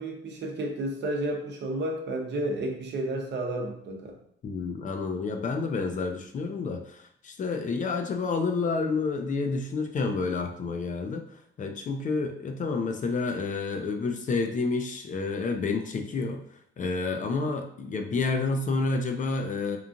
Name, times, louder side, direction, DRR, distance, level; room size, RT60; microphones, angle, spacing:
voice 1, 0.0-4.1, right 1 dB, 60° right, 2 dB, 0.7 m, -31 dB
voice 2, 4.4-16.4 16.8-19.8, left 4 dB, 40° left, 6 dB, 0.4 m, -29 dB
2.9 x 2.4 x 2.5 m, 0.67 s
cardioid pair, 90°, 20 cm